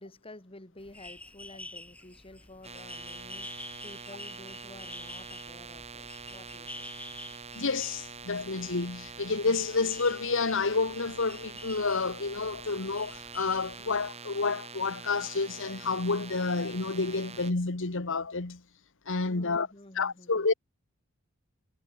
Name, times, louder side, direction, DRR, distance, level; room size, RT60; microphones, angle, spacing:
voice 1, 0.0-6.9 19.2-20.5, left 1 dB, 25° left, 4.1 m, -51 dB
sound 1, 0.8-14.1, left 1 dB, 5° left, 2.6 m, -48 dB
sound 2, 2.6-17.5, right 5 dB, 30° right, 4.0 m, -45 dB
voice 2, 7.5-18.6 19.1-19.7 19.9-20.5, left 4 dB, 60° left, 1.5 m, -29 dB
head